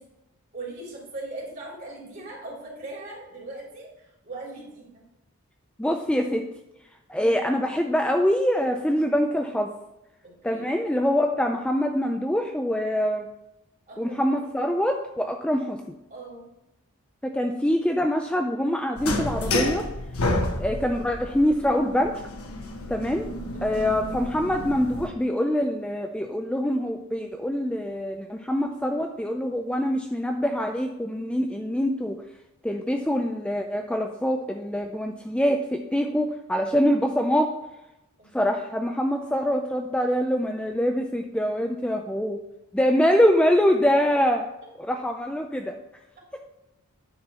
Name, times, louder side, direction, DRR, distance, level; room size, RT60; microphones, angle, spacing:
voice 1, 0.5-5.0 10.2-10.7 13.9-14.4 16.1-16.5 20.2-20.5 23.5-24.0 38.2-38.5, right 2 dB, 40° right, -4 dB, 3.4 m, -40 dB
voice 2, 5.8-6.4 7.1-9.7 10.4-13.3 14.0-16.0 17.2-19.9 20.6-22.2 22.9-23.3 23.6-32.2 32.6-37.5 38.3-42.4 42.7-44.4 44.8-45.8, equal, 5° left, 4 dB, 0.4 m, -24 dB
sound 1, 19.0-25.1, left 2 dB, 85° left, 1.2 m, -30 dB
9.5 x 4.6 x 5.5 m, 0.92 s
head